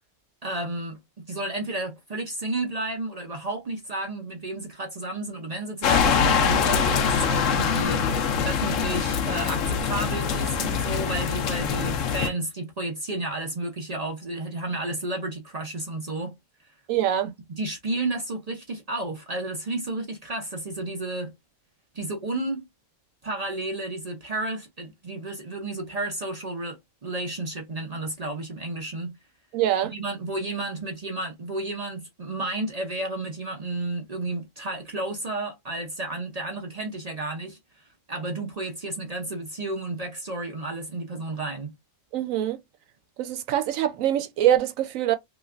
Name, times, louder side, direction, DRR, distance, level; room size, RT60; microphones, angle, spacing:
voice 1, 0.4-16.3 17.5-21.3 21.9-22.7 23.2-29.2 29.9-41.7, right 2 dB, 45° right, 0.5 m, -32 dB
sound 1, 5.8-12.3, left 6 dB, 75° left, 1.0 m, -24 dB
voice 2, 16.9-17.3 29.5-29.9 42.1-42.6 43.2-45.2, right 11 dB, 85° right, 1.0 m, -24 dB
3.1 x 2.9 x 2.4 m
omnidirectional pair, 1.3 m